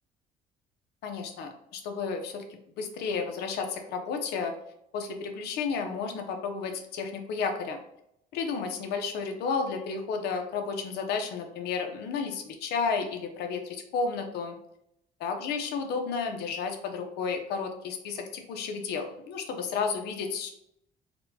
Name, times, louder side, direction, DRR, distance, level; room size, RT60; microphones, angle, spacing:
voice 1, 1.0-2.4 2.8-4.5 4.9-7.8 8.3-14.6 15.2-20.5, left 5 dB, 80° left, 5 dB, 0.7 m, -32 dB
4.2 x 2.2 x 2.7 m, 0.76 s
cardioid pair, 110°, 17 cm